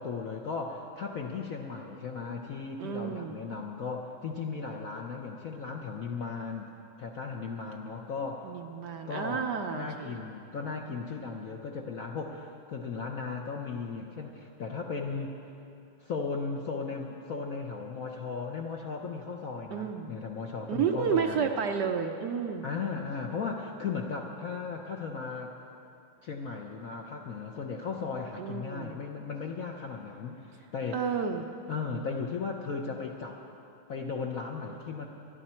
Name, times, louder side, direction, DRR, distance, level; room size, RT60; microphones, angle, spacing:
voice 1, 0.0-6.7 7.0-8.5 9.1-15.3 16.0-21.5 22.6-25.5 26.2-31.1 31.7-33.4 33.9-35.1, left 5 dB, 60° left, 1 dB, 1.0 m, -36 dB
voice 2, 2.8-3.4 8.4-10.1 19.7-20.1 20.7-22.7 28.4-28.9 30.9-31.5, right 6 dB, 70° right, 4 dB, 1.2 m, -31 dB
24.0 x 10.5 x 4.4 m, 2.7 s
omnidirectional pair, 2.1 m